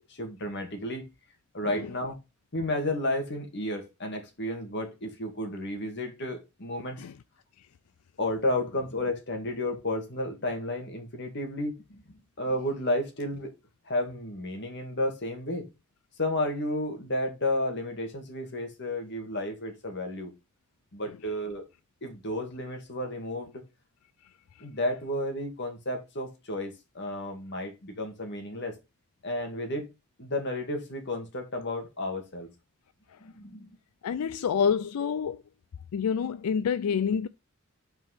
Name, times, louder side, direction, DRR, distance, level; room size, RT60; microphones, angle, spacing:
voice 1, 0.1-1.1 1.5-2.2 2.5-7.0 8.2-13.5 13.9-15.7 16.2-20.3 20.9-21.6 22.0-23.6 24.6-28.8 29.2-29.9 30.2-32.5 33.2-33.7, left 1 dB, 55° left, 1.8 m, -32 dB
voice 2, 34.0-35.4 35.9-37.3, left 7 dB, 90° left, 0.4 m, -27 dB
5.8 x 4.6 x 5.7 m
head